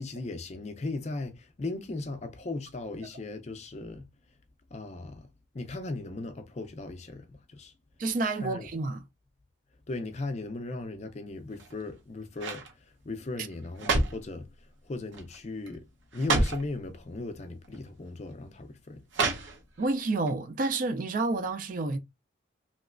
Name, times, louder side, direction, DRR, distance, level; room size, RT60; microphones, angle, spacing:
voice 1, 0.0-4.1 4.7-5.3 5.5-7.7 8.4-8.7 9.9-14.5 14.8-15.9 16.1-19.0, left 2 dB, 35° left, 0.4 m, -37 dB
voice 2, 8.0-9.0 19.8-22.0, right 3 dB, 40° right, 0.3 m, -29 dB
sound 1, 11.5-11.9 12.4-12.7 13.5-14.3 15.1-15.4 15.7-15.8 16.1-16.7 17.6-17.8 19.1-19.9 20.3-20.4, right 3 dB, 75° right, 0.8 m, -29 dB
3.1 x 2.9 x 2.4 m
head